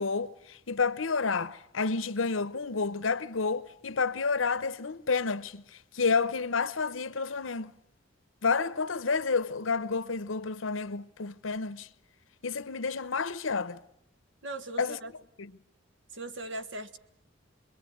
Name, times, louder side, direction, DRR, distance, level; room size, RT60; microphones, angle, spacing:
voice 1, 0.0-7.7 8.4-11.9 12.4-13.8 14.8-15.0 15.4-15.5, left 4 dB, 85° left, 0.9 m, -30 dB
voice 2, 14.4-15.1 16.1-17.0, right 2 dB, 70° right, 1.8 m, -39 dB
26.5 x 22.0 x 9.3 m
head